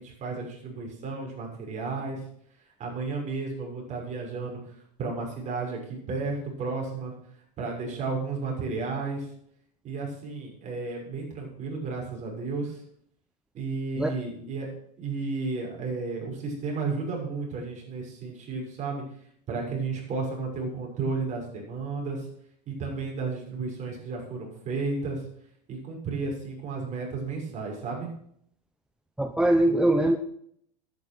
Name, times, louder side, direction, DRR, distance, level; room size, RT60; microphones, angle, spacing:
voice 1, 0.0-2.2 2.8-7.1 7.6-9.3 9.8-12.8 13.5-14.7 15.0-19.0 19.5-22.3 22.7-25.2 25.7-28.1, right 4 dB, 35° right, 0 dB, 6.5 m, -33 dB
voice 2, 29.2-30.2, right 1 dB, 5° right, 6 dB, 0.9 m, -22 dB
10.5 x 9.8 x 6.3 m, 0.66 s
hypercardioid pair, 100°, 20 cm